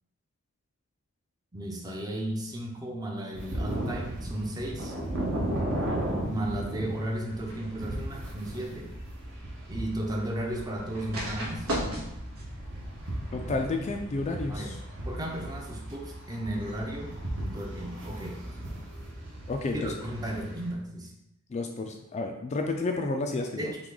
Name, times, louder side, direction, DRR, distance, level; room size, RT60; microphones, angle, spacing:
voice 1, 1.5-5.0 6.2-8.9 9.7-12.1 14.5-14.7 15.0-18.8 19.7-21.1 23.6-23.8, right 1 dB, 20° right, 0 dB, 0.6 m, -35 dB
sound 1, 3.3-20.7, right 1 dB, 60° right, 1.1 m, -36 dB
sound 2, 7.1-14.3, equal, 80° right, 1.1 m, -40 dB
voice 2, 13.3-14.8 19.5-19.9 21.5-23.7, left 3 dB, 30° left, 4 dB, 0.3 m, -31 dB
5.9 x 2.3 x 3.8 m, 0.85 s
head